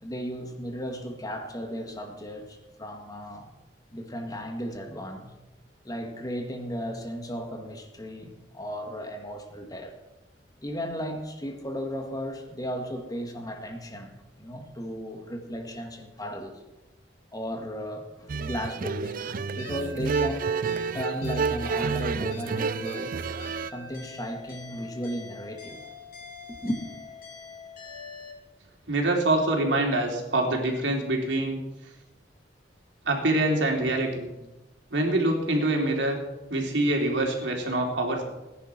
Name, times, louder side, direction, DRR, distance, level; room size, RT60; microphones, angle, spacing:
voice 1, 0.0-3.5 3.9-5.3 5.8-10.0 10.6-16.6 17.3-20.6 20.9-23.1 23.7-25.9 26.5-26.8, equal, 20° left, 2.0 m, -35 dB
sound 1, 18.3-23.7, right 5 dB, 50° right, 0.4 m, -29 dB
sound 2, 19.6-28.3, left 3 dB, 55° left, 5.1 m, -44 dB
voice 2, 28.9-31.6 33.1-34.3 34.9-36.2 36.5-38.2, right 2 dB, 85° right, 3.5 m, -25 dB
18.0 x 10.5 x 6.0 m
head